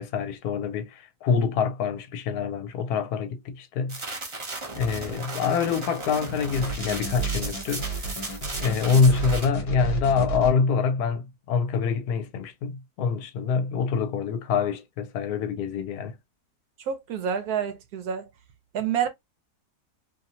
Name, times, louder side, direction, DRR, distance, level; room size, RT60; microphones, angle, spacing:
voice 1, 0.0-4.2 4.7-7.9 8.6-16.1, left 5 dB, 75° left, 1.1 m, -25 dB
sound 1, 3.9-9.4, right 2 dB, 30° right, 0.5 m, -36 dB
sound 2, 6.5-10.5, right 4 dB, 45° left, 1.1 m, -32 dB
voice 2, 16.9-18.3 18.7-19.1, right 8 dB, 75° right, 1.0 m, -28 dB
2.8 x 2.7 x 2.7 m
omnidirectional pair, 1.7 m